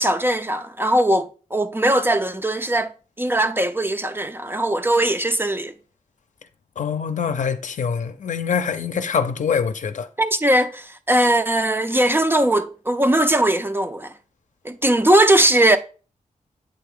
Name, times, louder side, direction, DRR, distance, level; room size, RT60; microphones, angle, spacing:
voice 1, 0.0-2.9 3.2-5.7 10.2-14.1 14.6-15.8, right 1 dB, 15° right, 0.4 m, -19 dB
voice 2, 6.8-10.1, left 6 dB, 65° left, 0.6 m, -24 dB
7.9 x 3.5 x 3.7 m
wide cardioid pair, 125°, 14 cm